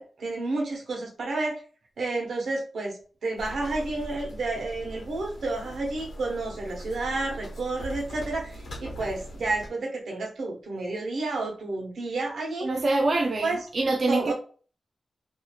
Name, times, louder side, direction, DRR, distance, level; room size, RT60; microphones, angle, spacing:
voice 1, 0.0-1.6 2.0-12.7 13.4-13.6 14.1-14.3, right 2 dB, 85° right, 1.0 m, -30 dB
sound 1, 3.4-9.7, right 1 dB, 80° left, 0.8 m, -40 dB
voice 2, 12.6-14.3, right 2 dB, 50° right, 0.3 m, -25 dB
3.2 x 2.6 x 2.2 m
wide cardioid pair, 115°, 0 cm